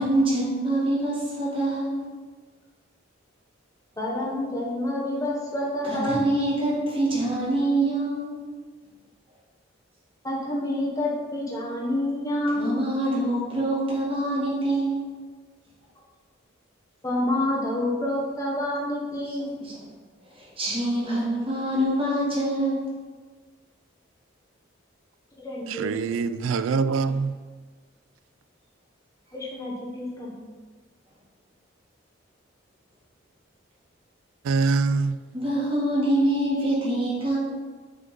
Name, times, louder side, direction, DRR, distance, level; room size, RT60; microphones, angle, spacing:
voice 1, 0.0-2.0 5.8-8.5 12.6-15.1 19.3-19.7 20.3-22.8 35.3-37.4, right 1 dB, 25° right, -6 dB, 2.0 m, -25 dB
voice 2, 4.0-6.3 10.2-12.8 17.0-19.5 25.4-25.9 29.3-30.5, left 1 dB, 15° left, -5 dB, 1.1 m, -28 dB
voice 3, 25.7-27.3 34.4-35.2, right 4 dB, 85° right, 13 dB, 0.3 m, -24 dB
6.6 x 3.7 x 5.2 m, 1.4 s
head